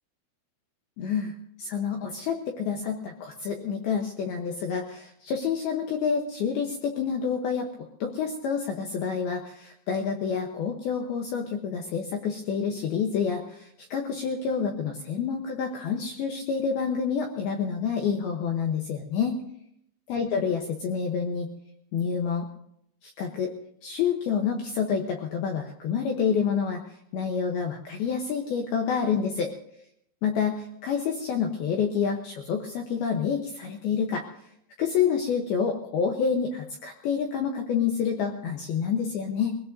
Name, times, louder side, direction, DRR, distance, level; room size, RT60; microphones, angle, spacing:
voice 1, 1.0-1.3 1.6-7.7 8.0-19.4 20.1-21.5 21.9-22.5 23.0-23.5 23.8-26.8 27.1-29.5 30.2-34.2 34.8-39.6, left 6 dB, 85° left, 2 dB, 2.2 m, -28 dB
23.5 x 17.0 x 2.7 m, 0.74 s
omnidirectional pair, 5.8 m